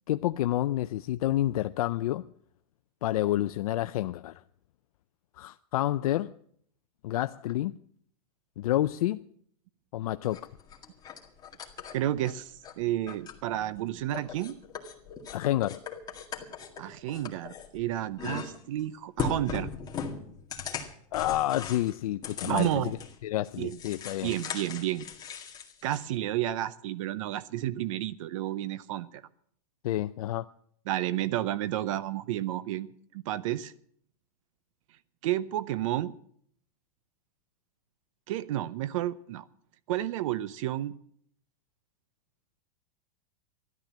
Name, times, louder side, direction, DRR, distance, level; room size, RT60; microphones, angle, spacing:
voice 1, 0.1-2.2 3.0-4.4 5.4-6.3 7.0-7.7 8.6-9.2 9.9-10.4 15.3-15.8 21.1-23.0 23.2-24.3 29.8-30.5, left 14 dB, 75° left, 0.5 m, -29 dB
sound 1, 10.2-12.7 13.1-13.8 14.1-17.8 18.2-18.8 19.2-23.2 23.4-26.0, left 6 dB, 20° left, 2.0 m, -39 dB
voice 2, 11.9-14.6 16.8-19.7 22.4-22.9 23.6-23.8 24.2-25.1 25.8-29.2 30.9-32.9 33.1-33.7 35.2-36.1 38.3-39.4 39.9-41.0, right 13 dB, 60° right, 0.7 m, -31 dB
13.5 x 12.0 x 7.4 m
supercardioid pair, 140°, 19 cm